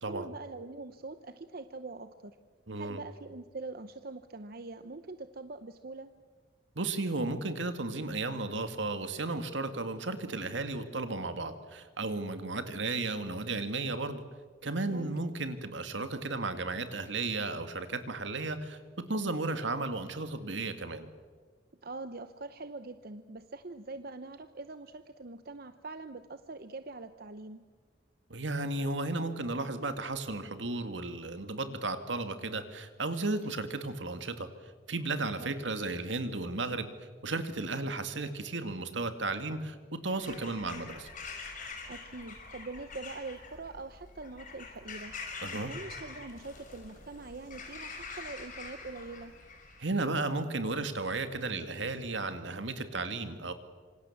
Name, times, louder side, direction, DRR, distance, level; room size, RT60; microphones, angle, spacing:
voice 1, 0.1-2.4 2.8-6.1 14.9-15.1 21.8-27.6 35.4-35.5 41.9-45.1 45.5-49.3, right 3 dB, 55° right, 10 dB, 0.9 m, -43 dB
voice 2, 2.7-3.0 6.8-14.2 14.6-21.1 28.3-34.5 34.9-36.9 37.2-41.1 45.4-45.7 49.8-53.5, right 3 dB, 80° right, 8 dB, 2.1 m, -34 dB
Bird vocalization bird call bird song / Crow, 40.1-50.0, left 4 dB, 45° left, 5.5 m, -45 dB
26.5 x 25.0 x 7.3 m, 1.5 s
head